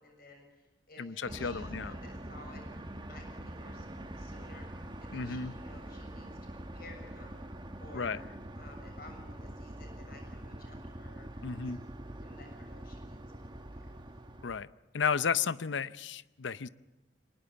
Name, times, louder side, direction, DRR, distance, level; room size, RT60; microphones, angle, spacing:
voice 1, 0.0-2.6 3.1-3.9 4.1-4.7 5.0-8.2 8.5-11.8 12.2-13.2 13.7-14.2, left 2 dB, 50° left, 3 dB, 6.7 m, -54 dB
voice 2, 1.0-1.9 5.1-5.5 7.9-8.2 11.4-11.8 14.4-14.7 14.9-16.7, left 6 dB, 80° left, 16 dB, 0.7 m, -33 dB
sound 1, 1.2-14.6, right 1 dB, 25° right, 1.4 m, -44 dB
24.5 x 20.0 x 7.0 m, 1.1 s
head